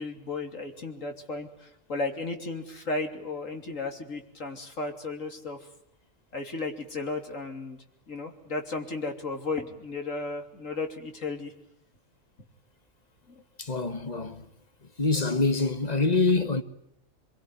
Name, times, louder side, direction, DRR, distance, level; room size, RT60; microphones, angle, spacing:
voice 1, 0.0-5.7 6.3-7.8 8.1-11.5, left 3 dB, 80° left, 3.6 m, -34 dB
voice 2, 13.6-14.4 15.0-16.6, left 3 dB, 30° left, 1.6 m, -25 dB
26.0 x 23.0 x 9.7 m
omnidirectional pair, 1.3 m